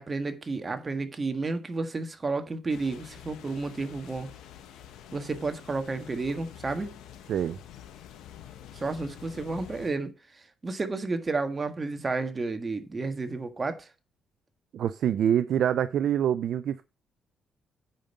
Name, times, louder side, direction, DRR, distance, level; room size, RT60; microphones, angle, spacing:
voice 1, 0.0-4.3 5.1-7.0 8.7-10.1 10.6-13.9, right 3 dB, 30° right, 1.6 m, -31 dB
sound 1, 2.7-9.9, left 10 dB, 90° left, 1.3 m, -47 dB
voice 2, 14.7-16.8, right 9 dB, 70° right, 0.5 m, -25 dB
8.9 x 5.4 x 5.4 m
cardioid pair, 90°, 0 cm